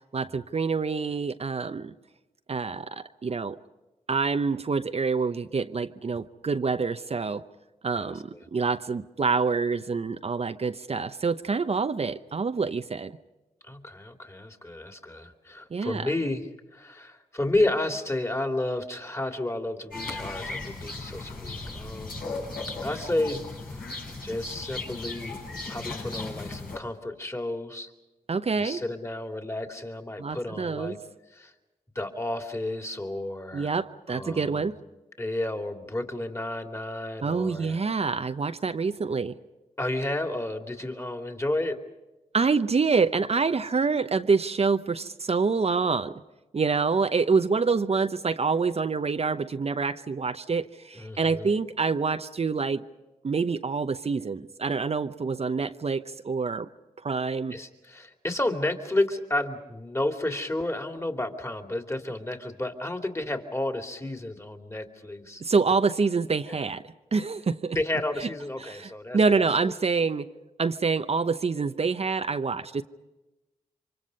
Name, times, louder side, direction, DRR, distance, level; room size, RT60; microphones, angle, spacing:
voice 1, 0.1-1.9 2.5-3.6 4.1-7.4 7.8-13.1 15.7-16.1 28.3-28.8 30.2-31.0 33.5-34.8 37.2-39.4 42.3-46.2 46.5-52.9 53.2-56.7 57.0-57.6 65.4-66.8 67.1-67.8 68.2-68.3 68.6-70.3 70.6-72.8, right 4 dB, 45° right, 10 dB, 0.8 m, -26 dB
voice 2, 8.0-8.5 13.6-16.5 16.7-22.2 22.8-23.4 24.2-25.4 25.7-27.9 28.6-31.0 31.3-31.5 31.9-33.7 34.1-34.7 35.2-37.8 39.8-41.8 50.9-51.5 57.5-65.4 66.5-66.6 67.7-69.5, left 1 dB, 20° left, 4 dB, 2.9 m, -31 dB
sound 1, 19.9-26.8, left 3 dB, 75° left, 6.7 m, -36 dB
28.0 x 24.5 x 5.4 m, 1.0 s
supercardioid pair, 45°, 15 cm